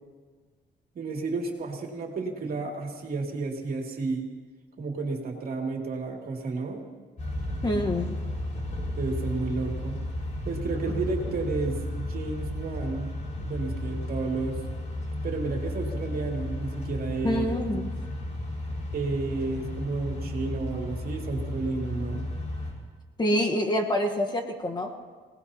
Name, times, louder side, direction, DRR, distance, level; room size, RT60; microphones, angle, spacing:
voice 1, 0.9-4.3 4.8-6.8 9.0-10.0 10.4-13.1 13.4-14.6 15.2-17.4 18.9-22.3, right 3 dB, 50° right, 0 dB, 2.8 m, -31 dB
sound 1, 7.2-22.7, left 1 dB, 40° left, 5.3 m, -33 dB
voice 2, 7.6-8.2 17.2-17.9 23.2-24.9, left 1 dB, 25° left, 3 dB, 1.3 m, -26 dB
27.5 x 18.5 x 2.9 m, 1.5 s
cardioid pair, 115°, 19 cm